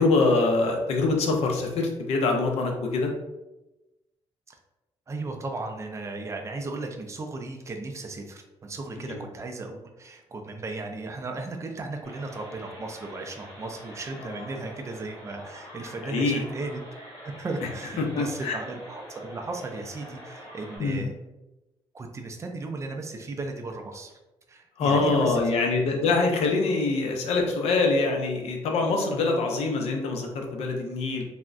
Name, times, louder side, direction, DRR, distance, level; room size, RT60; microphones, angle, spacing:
voice 1, 0.0-3.1 9.1-9.2 14.2-14.5 16.0-16.4 18.0-18.5 20.8-21.0 24.8-31.2, left 3 dB, 85° left, 2 dB, 0.5 m, -24 dB
voice 2, 5.1-16.8 17.2-21.1 21.9-24.1 24.5-25.7, right 3 dB, 30° right, 4 dB, 0.4 m, -36 dB
sound 1, 12.0-20.8, equal, 30° left, 1.4 m, -45 dB
3.4 x 2.0 x 2.4 m, 1.0 s
cardioid pair, 120°, 10 cm